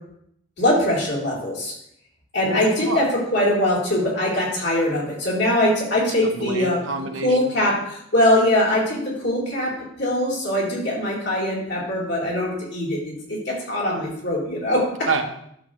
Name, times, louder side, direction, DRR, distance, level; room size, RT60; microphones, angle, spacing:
voice 1, 0.6-1.7 2.3-6.8 7.2-15.1, left 1 dB, 60° left, -4 dB, 3.7 m, -22 dB
voice 2, 2.4-3.0 6.2-7.4 15.1-15.2, right 4 dB, 80° right, 5 dB, 1.0 m, -27 dB
11.5 x 6.7 x 3.2 m, 0.71 s
head